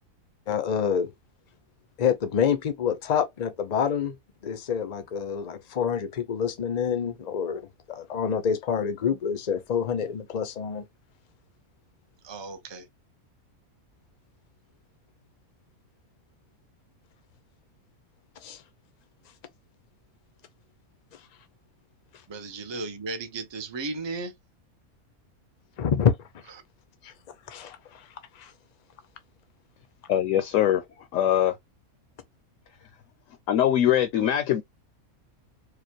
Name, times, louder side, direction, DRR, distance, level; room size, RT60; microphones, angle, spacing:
voice 1, 0.5-1.1 2.0-4.2 4.4-10.8 18.4-18.6 25.8-26.2 27.0-27.1 27.5-28.1 28.3-28.5, left 7 dB, 45° left, 0.5 m, -27 dB
voice 2, 12.2-12.8 22.3-24.3, right 3 dB, 30° right, 0.5 m, -35 dB
voice 3, 30.1-30.8 31.1-31.6 33.5-34.6, left 11 dB, 70° left, 1.0 m, -22 dB
4.8 x 2.2 x 2.9 m
omnidirectional pair, 1.5 m